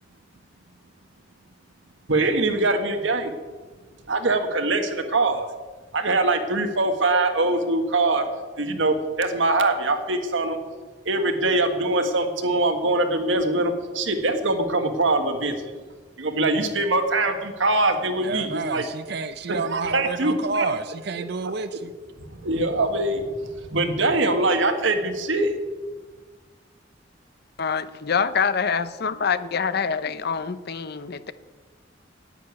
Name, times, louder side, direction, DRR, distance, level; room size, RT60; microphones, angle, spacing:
voice 1, 2.1-3.3 4.1-5.5 5.9-8.2 8.6-10.6 11.0-15.5 16.2-18.9 19.5-20.7 21.2-21.8 22.3-25.5, right 2 dB, 85° right, 6 dB, 1.5 m, -23 dB
voice 2, 18.2-21.9, right 4 dB, 60° right, 10 dB, 0.5 m, -29 dB
voice 3, 27.6-31.3, left 6 dB, 60° left, 14 dB, 0.7 m, -25 dB
10.0 x 8.7 x 9.5 m, 1.4 s
head